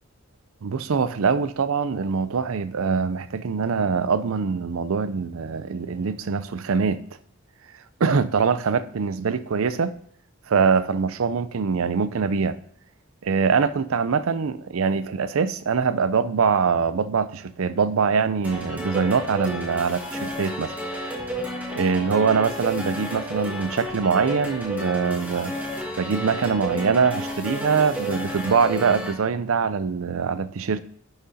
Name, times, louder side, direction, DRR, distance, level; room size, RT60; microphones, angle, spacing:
voice 1, 0.6-7.0 8.0-9.9 10.5-12.6 13.2-20.8 21.7-25.5 26.0-30.8, right 5 dB, 75° right, 0.5 m, -23 dB
sound 1, 18.4-29.1, equal, 10° right, 1.5 m, -31 dB
11.0 x 6.4 x 2.7 m
head